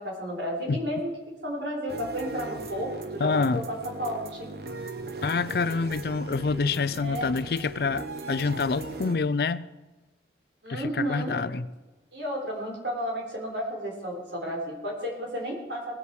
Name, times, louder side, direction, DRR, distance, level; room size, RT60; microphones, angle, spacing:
voice 1, 0.0-4.5 7.0-7.3 10.6-11.4 12.1-16.0, equal, 80° right, 3.7 m, -32 dB
sound 1, 1.9-9.2, right 3 dB, 60° right, 1.0 m, -38 dB
voice 2, 3.2-3.7 5.2-9.7 10.7-11.7, left 4 dB, 60° left, 0.4 m, -27 dB
19.0 x 8.4 x 4.7 m
head